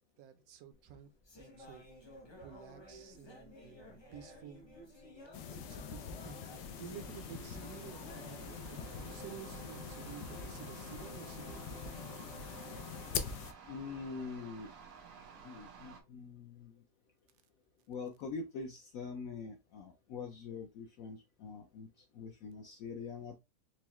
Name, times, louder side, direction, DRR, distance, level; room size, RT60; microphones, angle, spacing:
voice 1, 0.2-1.1 1.6-1.9 2.4-4.7 5.4-12.1, right 9 dB, 70° right, 0.9 m, -52 dB
sound 1, 0.7-14.2, equal, 45° left, 0.3 m, -55 dB
sound 2, 1.5-16.0, right 5 dB, 90° right, 1.5 m, -56 dB
sound 3, 5.3-13.5, left 7 dB, 85° left, 1.2 m, -44 dB
voice 2, 13.7-14.7 15.4-16.8 17.9-23.4, left 5 dB, 70° left, 0.9 m, -44 dB
4.6 x 2.1 x 2.9 m
omnidirectional pair, 1.7 m